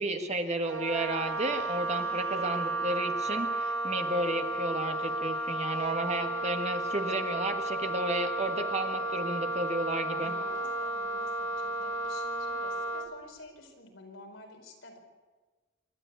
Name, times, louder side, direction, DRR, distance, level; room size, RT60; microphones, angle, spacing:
voice 1, 0.0-10.3, right 2 dB, 35° right, 5 dB, 1.6 m, -32 dB
Wind instrument woodwind instrument, 0.6-13.1, right 1 dB, 80° right, 1.4 m, -33 dB
voice 2, 2.0-2.6 10.2-15.0, left 2 dB, 85° left, 2 dB, 4.6 m, -50 dB
27.0 x 12.0 x 8.2 m, 1.3 s
head